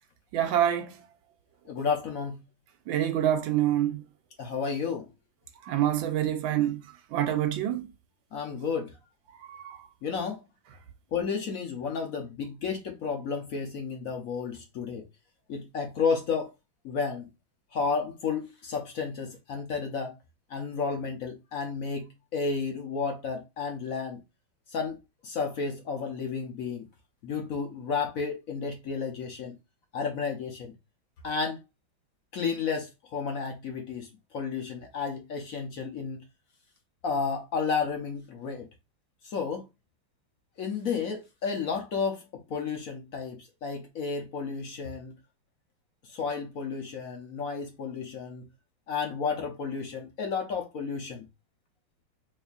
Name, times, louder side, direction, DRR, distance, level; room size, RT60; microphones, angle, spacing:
voice 1, 0.3-0.9 2.9-4.0 5.7-6.8 7.1-7.9 9.5-9.8, right 11 dB, 75° right, 1.4 m, -26 dB
voice 2, 1.7-2.4 4.4-5.1 8.3-9.0 10.0-10.4 11.1-15.0 15.5-16.5 16.8-17.3 17.7-20.2 20.5-24.2 24.7-25.0 25.2-26.9 27.2-29.6 29.9-30.7 31.2-31.6 32.3-36.2 37.0-38.7 39.2-39.6 40.6-45.1 46.0-48.5 48.9-51.3, left 5 dB, 60° left, 0.9 m, -32 dB
4.0 x 3.5 x 2.3 m
omnidirectional pair, 2.2 m